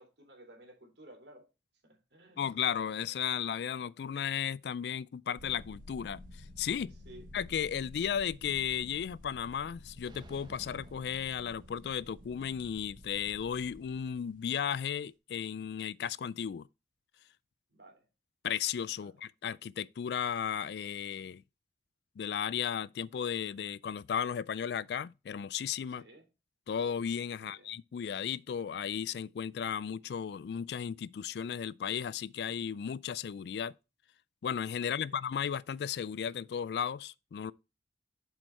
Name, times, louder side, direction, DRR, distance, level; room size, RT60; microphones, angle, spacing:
voice 1, 0.0-1.4 1.8-2.4 7.0-7.3 17.7-18.1 19.0-19.1 25.9-26.2 27.4-27.7 35.0-35.2, right 1 dB, 75° right, 3.1 m, -55 dB
voice 2, 2.4-6.2 6.6-6.9 7.3-16.7 18.4-21.4 22.2-26.1 26.7-33.7 34.4-37.5, left 8 dB, 65° left, 0.3 m, -35 dB
sound 1, 5.4-14.3, equal, 50° right, 1.0 m, -52 dB
sound 2, 10.0-12.2, right 1 dB, 25° right, 0.9 m, -55 dB
7.3 x 5.2 x 4.4 m
head